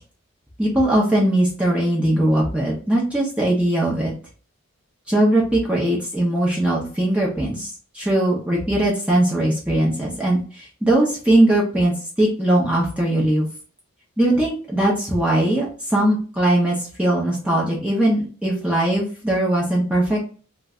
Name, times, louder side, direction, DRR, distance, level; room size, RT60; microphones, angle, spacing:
voice 1, 0.6-4.1 5.1-13.5 14.2-20.2, right 1 dB, 5° right, -4 dB, 0.7 m, -20 dB
2.5 x 2.2 x 3.6 m, 0.40 s
head